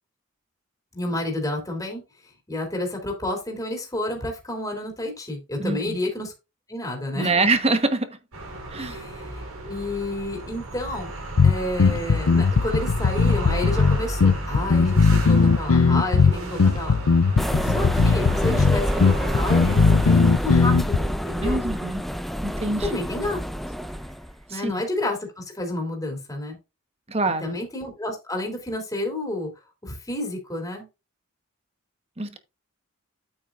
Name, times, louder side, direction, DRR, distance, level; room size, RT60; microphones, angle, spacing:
voice 1, 0.9-2.0 2.5-6.3 6.7-7.3 8.8-11.1 11.4-17.0 17.6-19.7 20.0-21.6 22.8-23.4 24.5-26.6 27.4-29.5 29.8-30.9, left 1 dB, 15° left, 3.0 m, -30 dB
voice 2, 5.6-6.0 7.1-8.2 8.7-9.0 21.4-22.0 22.4-23.0 24.5-24.7 27.1-27.6 32.2-32.4, right 3 dB, 30° right, 1.2 m, -25 dB
sound 1, 8.3-20.4, right 2 dB, 85° right, 3.9 m, -33 dB
sound 2, 11.4-21.0, left 4 dB, 85° left, 0.6 m, -18 dB
sound 3, 17.4-24.3, equal, ahead, 0.5 m, -27 dB
9.1 x 8.8 x 2.5 m
head